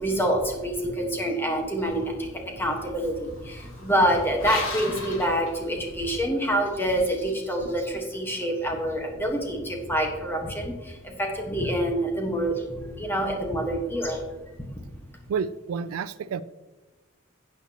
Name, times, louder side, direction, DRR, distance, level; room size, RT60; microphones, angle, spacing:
voice 1, 0.0-14.2 14.7-14.8, equal, 10° left, 1 dB, 1.3 m, -27 dB
sound 1, 1.8-6.2, left 3 dB, 70° left, 1.8 m, -38 dB
voice 2, 15.3-16.4, right 6 dB, 85° right, 16 dB, 0.4 m, -29 dB
11.5 x 8.5 x 2.9 m, 1.2 s
head